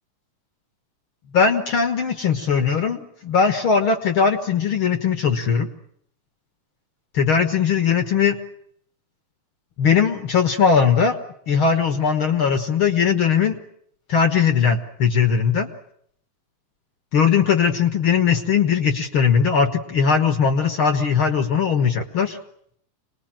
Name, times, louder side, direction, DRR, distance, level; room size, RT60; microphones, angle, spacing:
voice 1, 1.3-5.7 7.1-8.4 9.8-11.2 11.5-13.6 14.1-15.7 17.1-22.4, left 6 dB, 60° left, 9 dB, 1.4 m, -19 dB
26.5 x 20.0 x 8.9 m, 0.69 s
omnidirectional pair, 4.0 m